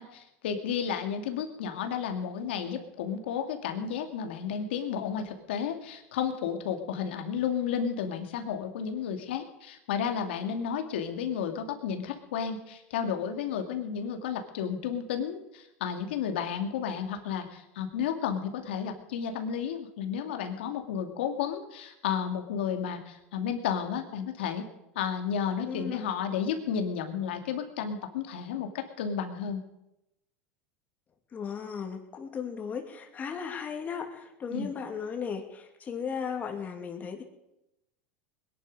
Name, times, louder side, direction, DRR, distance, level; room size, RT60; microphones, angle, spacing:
voice 1, 0.0-24.7 25.0-29.6 34.5-34.7, left 7 dB, 85° left, 5 dB, 2.3 m, -32 dB
voice 2, 25.7-26.1 31.3-37.2, left 6 dB, 30° left, 4 dB, 2.6 m, -36 dB
21.0 x 11.0 x 5.3 m, 0.88 s
supercardioid pair, 115°, 6 cm